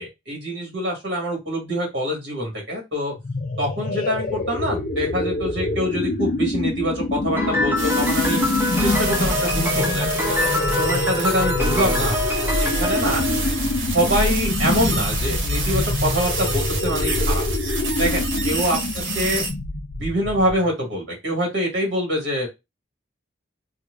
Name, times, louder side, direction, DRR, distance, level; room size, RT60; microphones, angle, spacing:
voice 1, 0.0-3.1 3.6-8.4 8.8-10.1 10.4-12.2 12.6-13.2 13.9-17.4 18.0-18.8 19.1-19.4 20.0-22.5, equal, 65° right, -1 dB, 1.8 m, -25 dB
sound 1, 3.2-20.7, left 2 dB, 45° left, 0.4 m, -25 dB
Piano, 7.4-14.2, left 2 dB, 10° right, 0.6 m, -26 dB
sound 2, 7.8-19.5, right 3 dB, 90° right, 1.2 m, -29 dB
4.4 x 2.4 x 2.5 m, 0.22 s
head